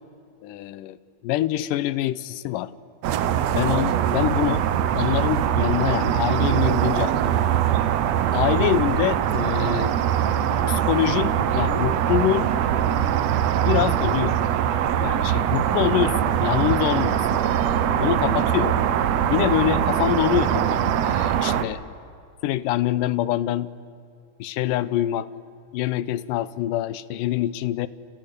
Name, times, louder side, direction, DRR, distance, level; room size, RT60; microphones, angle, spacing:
voice 1, 0.4-1.0 1.2-2.7 3.5-4.6 4.9-7.3 8.3-9.9 10.7-12.5 13.7-14.4 15.0-17.4 18.0-18.8 19.3-21.8 22.4-23.7 24.4-25.3 25.7-27.9, left 13 dB, 85° left, 16 dB, 2.4 m, -25 dB
sound 1, 3.0-21.7, right 10 dB, 65° right, 1.9 m, -22 dB
29.5 x 29.0 x 6.8 m, 2.5 s
omnidirectional pair, 3.8 m